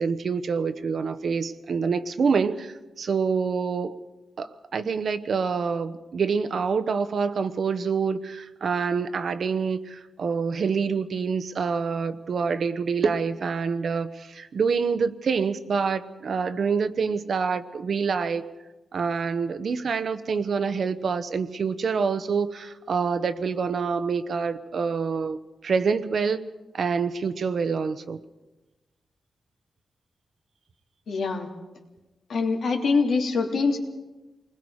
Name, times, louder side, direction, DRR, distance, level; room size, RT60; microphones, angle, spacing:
voice 1, 0.0-4.0 4.4-18.4 18.9-26.4 26.7-28.2, right 5 dB, 60° right, 1.0 m, -26 dB
voice 2, 31.1-31.5 32.3-33.8, left 4 dB, 75° left, 3.0 m, -24 dB
28.5 x 20.5 x 4.9 m
wide cardioid pair, 135°, 0 cm